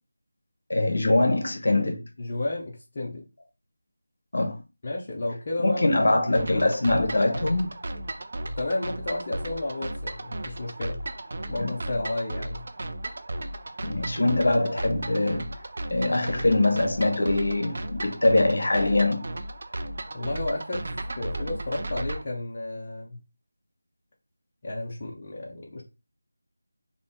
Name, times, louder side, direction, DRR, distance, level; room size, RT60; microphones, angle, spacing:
voice 1, 0.7-2.0 4.3-4.6 5.6-7.7 11.6-11.7 13.8-15.5 15.9-19.2, left 2 dB, 60° left, 0.9 m, -23 dB
voice 2, 2.2-3.2 4.8-6.8 8.6-11.0 11.5-12.6 20.1-20.9 21.2-23.2 24.6-25.8, left 2 dB, 30° left, 0.5 m, -32 dB
sound 1, 6.3-22.2, right 1 dB, 40° right, 0.4 m, -35 dB
3.8 x 2.1 x 3.5 m
figure-of-eight pair, 175°, 0 cm